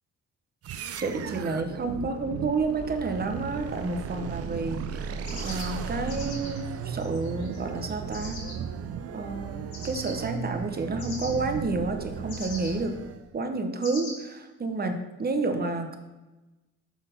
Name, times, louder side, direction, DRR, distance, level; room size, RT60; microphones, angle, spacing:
sound 1, 0.6-13.3, right 7 dB, 50° right, 0.5 m, -36 dB
voice 1, 1.0-5.2 5.4-8.4 9.1-13.0 13.3-16.0, right 3 dB, 30° right, 6 dB, 0.9 m, -30 dB
sound 2, 5.2-8.5 9.7-10.1 11.0-11.3 12.3-12.7 13.8-14.1, left 2 dB, 70° left, 2.1 m, -41 dB
6.3 x 3.6 x 5.6 m, 1.1 s
cardioid pair, 90°, 30 cm